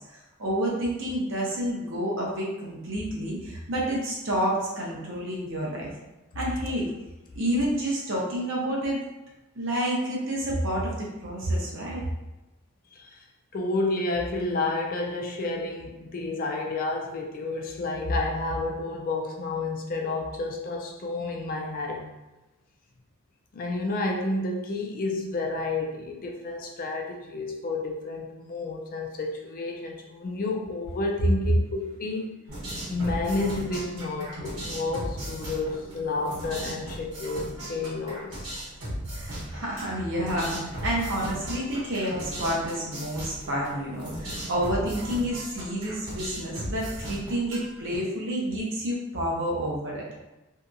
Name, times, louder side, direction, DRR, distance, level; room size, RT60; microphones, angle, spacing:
voice 1, 0.1-5.9 6.3-6.9 7.3-9.0 9.6-12.0 39.1-50.2, equal, 60° right, -3 dB, 0.8 m, -29 dB
voice 2, 12.9-13.2 13.5-22.1 23.5-32.3 32.9-38.6, left 2 dB, 40° left, 0 dB, 0.4 m, -30 dB
sound 1, 32.5-48.0, equal, 85° right, 1.1 m, -37 dB
2.7 x 2.5 x 2.3 m, 1.0 s
head